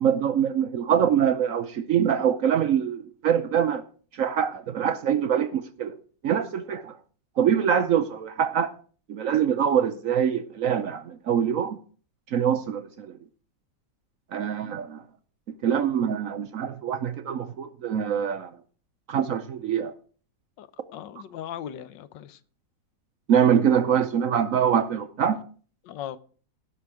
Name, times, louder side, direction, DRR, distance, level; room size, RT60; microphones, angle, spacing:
voice 1, 0.0-3.8 4.1-5.9 6.2-7.0 7.4-8.7 9.1-11.8 12.3-13.2 14.3-15.0 15.6-18.5 19.1-19.9 23.3-25.4, right 8 dB, 65° right, 0.9 m, -24 dB
voice 2, 20.9-22.4 25.8-26.2, left 10 dB, 90° left, 1.4 m, -38 dB
17.0 x 6.0 x 4.7 m
omnidirectional pair, 1.9 m